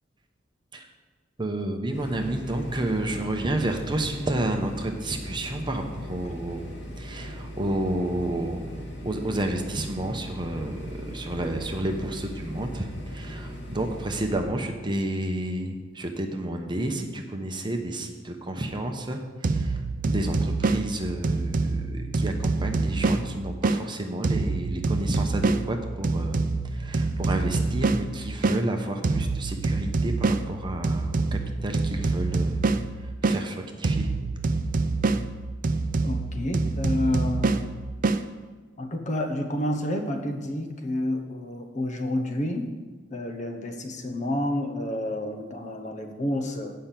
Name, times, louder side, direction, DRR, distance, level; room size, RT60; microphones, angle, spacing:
voice 1, 1.4-6.7 7.0-8.7 9.0-19.2 19.5-19.8 20.0-26.4 26.7-32.6 33.2-34.1, right 1 dB, 25° right, 4 dB, 0.8 m, -30 dB
sound 1, 1.9-14.4, equal, 85° left, 2.1 m, -39 dB
sound 2, 19.4-23.8 24.2-28.6 29.0-33.4 33.8-38.2, right 3 dB, 50° right, 0.5 m, -26 dB
voice 2, 36.0-37.7 38.8-42.7 43.1-46.7, left 1 dB, 40° left, 5 dB, 1.0 m, -29 dB
8.5 x 5.6 x 7.4 m, 1.3 s
head